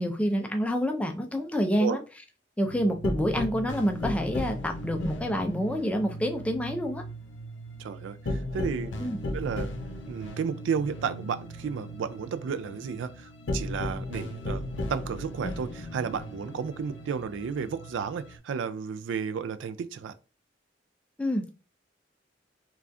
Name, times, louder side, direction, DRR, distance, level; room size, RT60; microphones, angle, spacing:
voice 1, 0.0-2.0 2.6-7.0 9.0-9.2 21.2-21.5, equal, 5° left, 0.4 m, -28 dB
sound 1, 2.7-18.4, left 1 dB, 85° left, 0.6 m, -36 dB
voice 2, 7.8-8.9 9.3-9.7 10.1-14.6 14.9-20.1, right 6 dB, 90° right, 0.3 m, -33 dB
3.3 x 2.3 x 2.5 m
head